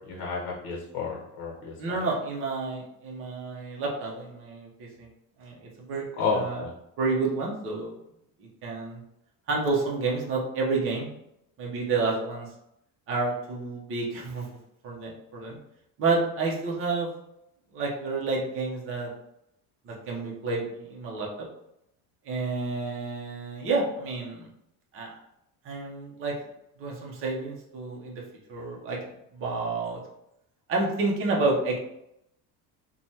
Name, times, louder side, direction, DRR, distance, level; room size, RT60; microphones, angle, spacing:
voice 1, 0.1-1.7 6.2-6.7, left 4 dB, 60° left, -2 dB, 0.8 m, -31 dB
voice 2, 1.8-5.1 5.4-6.0 6.3-6.7 7.0-7.9 8.4-9.0 9.5-11.2 11.6-12.5 13.1-14.5 14.8-15.6 16.0-17.1 17.7-19.1 19.8-21.3 22.2-24.5 24.9-25.1 25.6-26.3 26.8-28.1 28.5-29.0 29.3-30.0 30.7-31.8, right 3 dB, 35° right, -2 dB, 0.7 m, -29 dB
3.2 x 2.2 x 2.7 m, 0.81 s
cardioid pair, 165°, 40 cm